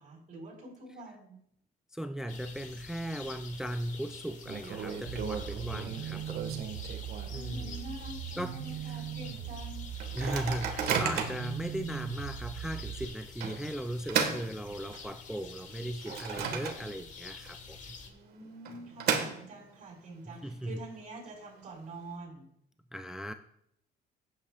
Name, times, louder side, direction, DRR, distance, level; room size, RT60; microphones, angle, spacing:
voice 1, 0.0-1.4 7.3-9.8 14.7-14.8 18.0-22.5, right 1 dB, 45° right, -2 dB, 4.6 m, -46 dB
voice 2, 1.9-6.7 7.3-7.8 8.4-9.0 10.2-18.0 20.3-20.8 22.9-23.3, right 1 dB, 5° right, 8 dB, 0.4 m, -38 dB
sound 1, 2.3-18.1, left 5 dB, 45° left, 1.6 m, -48 dB
Microwave oven, 3.2-3.7 4.0-4.1 4.5-7.5 8.0-8.1 8.3-8.7 9.2-9.3 10.0-11.5 12.1-12.3 13.4-15.2 15.7-17.2 17.5-17.6 18.4-19.8, right 6 dB, 70° right, 1.7 m, -34 dB
sound 2, 5.1-13.1, right 11 dB, 90° right, 0.7 m, -40 dB
16.0 x 8.7 x 2.4 m, 0.74 s
cardioid pair, 110°, 17 cm